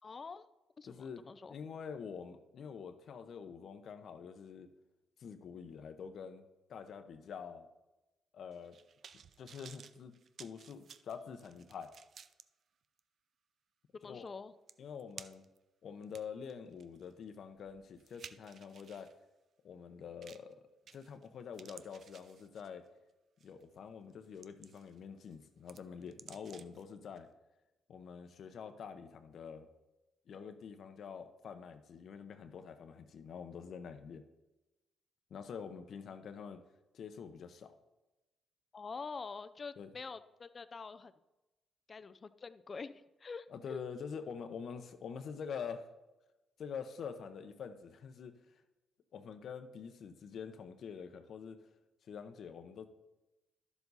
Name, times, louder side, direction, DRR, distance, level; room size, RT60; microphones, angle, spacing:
voice 1, 0.0-0.5 0.8-1.5 13.9-14.5 38.7-41.1 41.9-43.8, left 4 dB, 35° left, 13 dB, 0.5 m, -46 dB
voice 2, 0.8-4.7 5.2-6.4 6.7-7.7 8.3-8.8 9.4-10.1 10.4-11.9 14.0-14.3 14.8-15.4 15.8-19.1 19.6-20.5 20.9-22.9 23.4-27.3 27.9-29.7 30.3-34.2 35.3-36.6 36.9-37.7 39.8-39.9 43.5-45.9 46.6-48.6 49.1-51.7 52.0-52.9, left 6 dB, 60° left, 8 dB, 0.9 m, -46 dB
sound 1, 8.5-12.4 13.0-13.1 14.3-14.4 14.7-15.6 16.0-19.1 20.2-20.5 20.9-21.3 21.5-22.9 23.4-23.6 24.1-25.0 25.3-26.8 27.2-27.3, right 7 dB, 55° right, 0.5 m, -55 dB
11.5 x 7.1 x 4.1 m, 1.0 s
cardioid pair, 90°, 0 cm